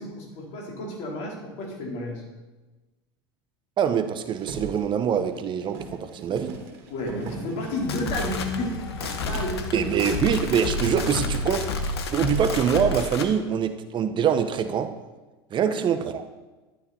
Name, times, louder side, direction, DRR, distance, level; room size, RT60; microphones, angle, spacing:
voice 1, 0.0-2.2 6.9-9.9 15.5-16.0, left 1 dB, 50° left, -1 dB, 4.6 m, -32 dB
voice 2, 3.8-6.6 9.7-14.9 15.5-16.2, right 8 dB, 35° right, 9 dB, 1.1 m, -24 dB
sound 1, 4.4-10.6 10.9-11.0 11.3-11.6 11.9-12.5, right 4 dB, 60° right, 3.0 m, -42 dB
sound 2, 7.7-13.3, left 3 dB, 80° left, 1.5 m, -30 dB
12.5 x 12.0 x 4.5 m, 1.2 s
hypercardioid pair, 90°, 13 cm